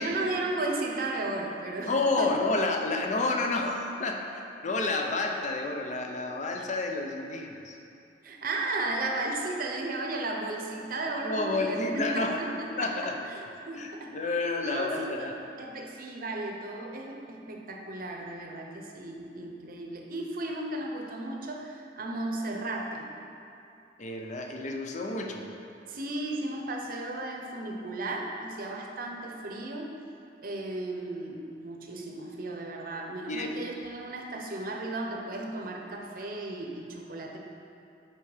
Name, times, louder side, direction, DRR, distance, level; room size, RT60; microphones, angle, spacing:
voice 1, 0.0-2.3 8.2-14.2 14.6-15.3 15.6-23.1 25.9-29.9 30.4-37.4, right 2 dB, 55° right, 1 dB, 0.7 m, -35 dB
voice 2, 1.8-7.8 11.2-12.4 12.8-13.1 13.7-15.3 24.0-25.5 33.3-33.5, left 2 dB, 40° left, 2 dB, 0.5 m, -30 dB
6.0 x 4.6 x 4.9 m, 2.7 s
head